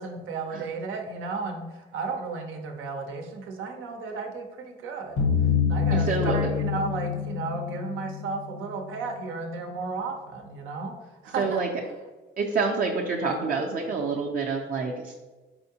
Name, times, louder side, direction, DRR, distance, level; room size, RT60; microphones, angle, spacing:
voice 1, 0.0-5.3 5.7-10.9 11.2-11.6, right 4 dB, 85° right, 4 dB, 0.7 m, -34 dB
sound 1, 5.2-8.9, left 7 dB, 80° left, 0.9 m, -26 dB
voice 2, 5.9-6.5 11.4-11.7 12.4-15.1, right 4 dB, 45° right, -1 dB, 0.5 m, -27 dB
4.3 x 3.5 x 2.8 m, 1.2 s
cardioid pair, 90°, 20 cm